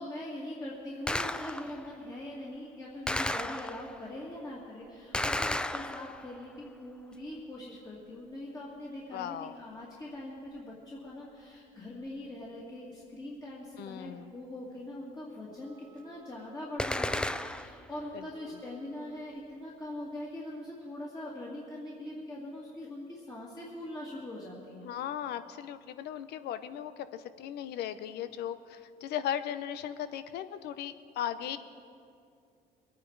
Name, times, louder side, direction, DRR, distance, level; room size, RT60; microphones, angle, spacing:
voice 1, 0.0-24.9, left 1 dB, 20° left, -5 dB, 2.2 m, -42 dB
Gunshot gunfire, 1.1-1.9 3.1-4.0 5.1-6.4 16.8-17.9, left 1 dB, 5° left, 0.4 m, -33 dB
voice 2, 9.1-9.6 13.8-14.3 18.1-18.6 24.8-31.6, left 10 dB, 75° left, 13 dB, 0.7 m, -37 dB
Wind instrument woodwind instrument, 15.6-19.7, right 2 dB, 10° right, 1.5 m, -61 dB
22.5 x 9.4 x 4.7 m, 2.4 s
cardioid pair, 110°, 17 cm